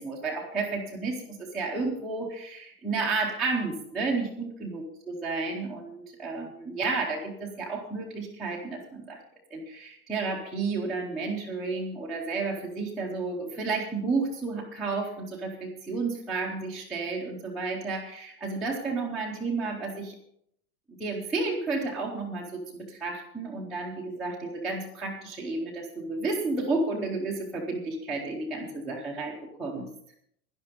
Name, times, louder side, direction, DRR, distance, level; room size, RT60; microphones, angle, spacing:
voice 1, 0.0-9.2 9.5-20.2 21.0-29.9, right 3 dB, ahead, -7 dB, 0.7 m, -32 dB
12.0 x 11.0 x 5.1 m, 0.70 s
supercardioid pair, 180°, 43 cm